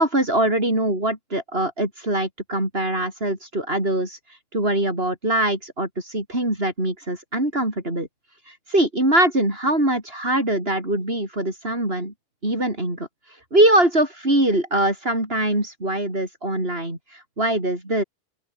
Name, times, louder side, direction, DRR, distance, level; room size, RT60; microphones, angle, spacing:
voice 1, 0.0-4.2 4.5-8.1 8.5-12.1 12.4-13.1 13.5-18.0, right 1 dB, 75° right, 7.7 m, -22 dB
open air
omnidirectional pair, 1.0 m